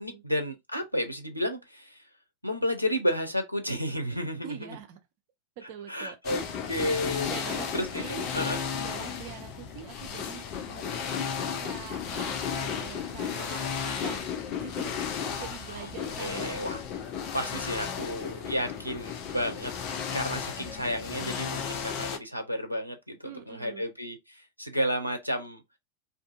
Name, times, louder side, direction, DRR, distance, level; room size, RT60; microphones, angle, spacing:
voice 1, 0.0-2.0 2.4-4.8 5.6-7.3 7.7-8.6 15.7-15.9 16.2-16.8 17.3-19.7 20.1-25.6, equal, 90° right, 0.5 m, -32 dB
voice 2, 4.4-5.0 5.6-6.2 6.9-7.0 7.3-8.6 8.8-11.3 11.6-14.3 14.6-14.9 15.4-16.7 19.5-19.6 23.2-23.9, right 8 dB, 45° right, 0.7 m, -44 dB
sound 1, 6.2-22.2, left 7 dB, 40° left, 0.5 m, -34 dB
2.6 x 2.5 x 2.4 m
figure-of-eight pair, 90°, 0 cm